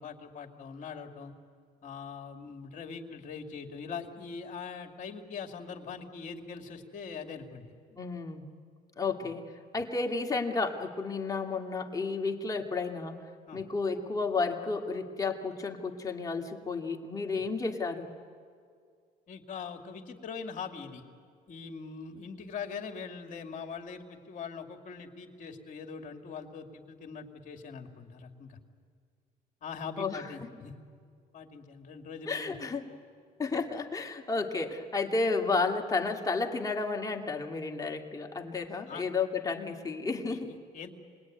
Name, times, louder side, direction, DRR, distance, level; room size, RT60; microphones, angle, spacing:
voice 1, 0.0-1.3 1.8-7.7 9.2-9.3 13.5-13.6 17.3-17.4 19.3-21.0 21.5-28.6 29.6-30.7 31.3-32.5 38.9-39.0 40.3-40.9, left 5 dB, 50° left, 4 dB, 2.6 m, -42 dB
voice 2, 7.9-8.4 9.0-13.3 13.5-18.1 30.0-30.3 32.3-32.8 33.4-40.5, left 4 dB, 20° left, 1 dB, 2.2 m, -32 dB
27.0 x 20.5 x 9.5 m, 2.1 s
cardioid pair, 110°, 17 cm